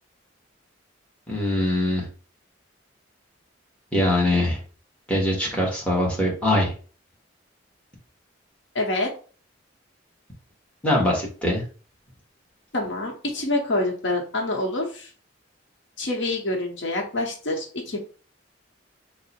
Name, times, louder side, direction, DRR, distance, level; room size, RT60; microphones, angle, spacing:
voice 1, 1.3-2.1 3.9-4.6 5.1-6.7 10.8-11.6, left 1 dB, 5° left, -3 dB, 1.1 m, -22 dB
voice 2, 8.7-9.1 12.7-15.1 16.0-18.0, left 2 dB, 65° left, 0 dB, 0.9 m, -26 dB
3.6 x 2.1 x 4.2 m, 0.39 s
head